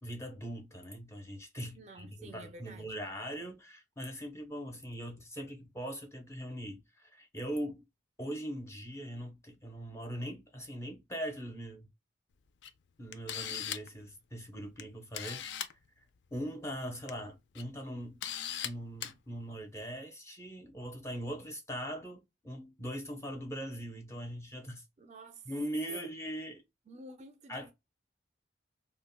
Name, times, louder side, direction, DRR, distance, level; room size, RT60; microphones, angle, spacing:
voice 1, 0.0-7.9 8.2-11.9 13.0-15.5 16.0-16.1 16.3-18.2 18.6-24.8 25.5-26.6 27.5-27.7, equal, 15° left, 0.6 m, -41 dB
voice 2, 1.7-2.9 25.0-25.5 25.9-26.0 26.9-27.7, right 1 dB, 35° right, 0.4 m, -51 dB
Camera, 12.6-12.7 13.1-13.9 14.8-14.9 15.1-15.7 16.9-17.1 17.5-17.6 18.2-18.7 19.0-19.1, left 10 dB, 70° left, 0.4 m, -38 dB
3.4 x 2.1 x 2.2 m
head